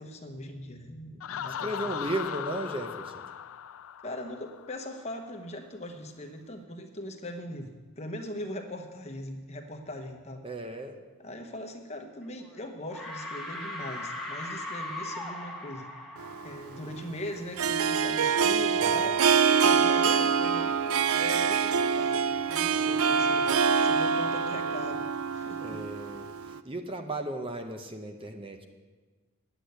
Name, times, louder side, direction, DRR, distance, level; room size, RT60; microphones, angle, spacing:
voice 1, 0.0-2.0 4.0-10.4 11.2-15.9 16.4-19.2 19.6-25.8, left 1 dB, 30° left, 4 dB, 1.0 m, -40 dB
Laughter, 1.2-4.9, left 9 dB, 75° left, 0.4 m, -38 dB
voice 2, 1.5-3.3 10.4-11.0 18.7-19.1 25.6-28.6, right 1 dB, 25° right, 5 dB, 0.8 m, -36 dB
sound 1, 12.2-12.6 12.9-17.5, left 1 dB, ahead, 1.5 m, -39 dB
Harp, 16.2-26.6, right 6 dB, 85° right, 0.4 m, -25 dB
10.0 x 8.4 x 8.0 m, 1.3 s
head